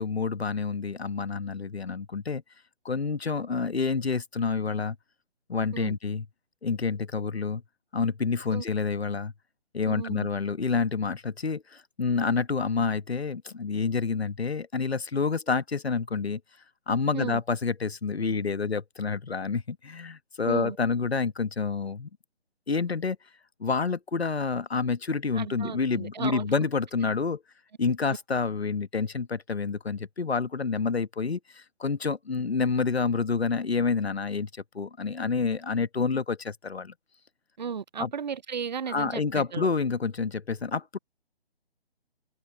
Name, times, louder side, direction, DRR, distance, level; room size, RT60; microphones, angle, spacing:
voice 1, 0.0-2.4 2.8-5.0 5.5-6.3 6.6-7.6 7.9-9.3 9.7-16.4 16.9-22.1 22.7-23.2 23.6-27.4 27.8-36.9 38.0-38.1 38.9-41.0, left 4 dB, 75° left, 1.2 m, -28 dB
voice 2, 9.8-10.3 17.1-17.4 20.4-20.8 25.3-26.6 27.8-27.9 37.6-39.7, right 6 dB, 45° right, 0.6 m, -35 dB
figure-of-eight pair, 145°, 32 cm